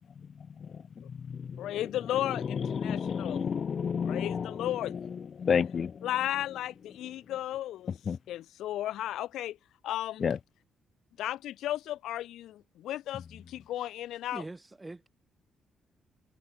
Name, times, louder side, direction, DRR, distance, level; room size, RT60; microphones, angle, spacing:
voice 1, 1.6-3.5 4.0-4.9 6.0-8.0 8.3-9.6 9.8-10.3 11.2-14.4, left 13 dB, 80° left, 2.5 m, -34 dB
voice 2, 2.7-4.7 5.4-5.9 8.1-8.2 10.2-10.4, left 6 dB, 50° left, 0.5 m, -29 dB
voice 3, 14.3-15.1, right 2 dB, 15° right, 3.9 m, -42 dB
cardioid pair, 90°, 0 cm